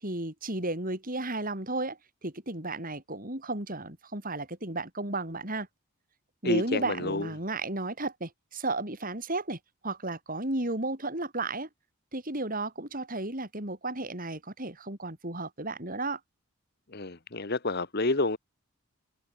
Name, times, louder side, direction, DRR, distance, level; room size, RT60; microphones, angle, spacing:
voice 1, 0.0-5.7 6.4-11.7 12.1-16.2, right 2 dB, 40° right, 5.7 m, -33 dB
voice 2, 6.4-7.3 16.9-18.4, left 2 dB, 45° left, 1.4 m, -29 dB
head